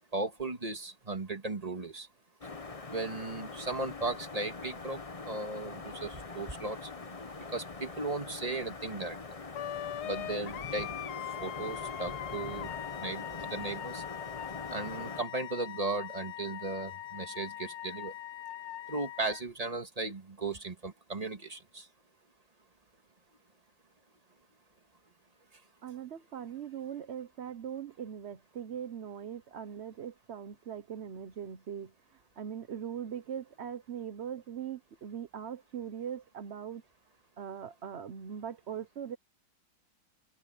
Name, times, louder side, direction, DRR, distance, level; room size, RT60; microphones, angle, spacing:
voice 1, 0.1-2.1 2.9-6.9 7.5-9.2 10.0-10.9 11.4-12.7 13.0-14.0 14.7-18.1 18.9-21.9, right 3 dB, 20° right, 1.9 m, -36 dB
sound 1, 2.4-15.2, left 3 dB, 30° left, 0.7 m, -43 dB
Wind instrument woodwind instrument, 9.5-19.4, left 12 dB, 85° left, 1.7 m, -41 dB
voice 2, 25.8-31.9 32.4-36.8 37.4-39.2, right 8 dB, 60° right, 0.6 m, -40 dB
open air
omnidirectional pair, 2.3 m